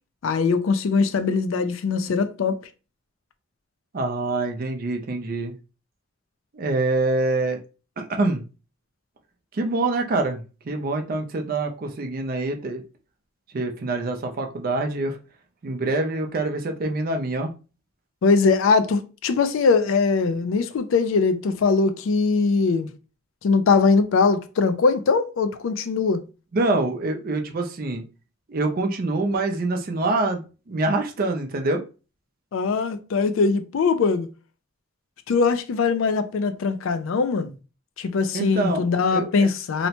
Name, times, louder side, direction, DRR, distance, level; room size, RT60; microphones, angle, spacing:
voice 1, 0.2-2.6 18.2-22.9 23.4-26.2 32.5-34.3 35.3-37.6 38.0-39.9, left 4 dB, 75° left, 0.4 m, -21 dB
voice 2, 3.9-5.5 6.5-7.6 8.0-8.4 9.5-10.4 10.7-12.8 13.5-15.2 15.6-17.5 26.5-28.0 28.5-31.8 38.3-38.8 39.1-39.5, right 2 dB, 45° right, 0.5 m, -25 dB
2.8 x 2.1 x 2.8 m
head